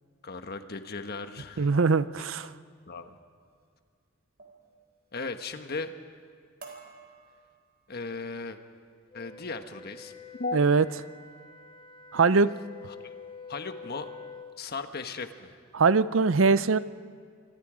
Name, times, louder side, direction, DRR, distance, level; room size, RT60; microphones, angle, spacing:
voice 1, 0.2-1.7 2.4-2.5 2.9-3.2 5.1-5.9 7.9-8.6 9.1-10.1 10.4-10.6 13.0-13.1 13.5-14.1 14.6-15.6, left 3 dB, 50° left, 7 dB, 1.3 m, -36 dB
voice 2, 1.6-2.5 10.5-10.8 12.1-12.5 15.7-16.8, right 4 dB, 75° right, 15 dB, 0.6 m, -22 dB
sound 1, 3.4-3.7 4.4-4.7 5.1-5.6 6.0-6.3 6.6-7.9 8.5-8.8 9.2-9.5, right 4 dB, 50° right, 4.0 m, -52 dB
Wind instrument woodwind instrument, 9.1-14.6, left 5 dB, 25° left, 1.0 m, -47 dB
28.0 x 24.5 x 5.0 m, 2.1 s
head